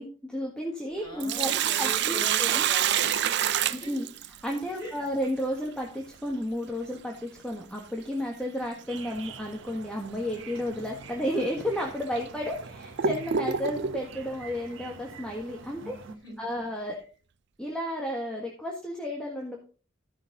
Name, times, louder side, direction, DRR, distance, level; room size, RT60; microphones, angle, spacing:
voice 1, 0.0-2.7 3.7-16.0 16.4-17.0 17.6-19.6, equal, 5° left, -1 dB, 1.6 m, -32 dB
voice 2, 1.0-4.0 4.8-5.1 15.8-16.4 16.9-17.0, left 1 dB, 25° left, 0 dB, 4.4 m, -41 dB
Sink (filling or washing), 1.0-4.6 7.0-7.1 9.0-9.2 9.7-9.8 10.6-10.7 11.4-11.5 12.2-14.1, right 9 dB, 60° right, 0.5 m, -27 dB
sound 1, 8.9-16.2, right 3 dB, 80° right, 1.3 m, -46 dB
14.0 x 6.0 x 4.1 m, 0.38 s
head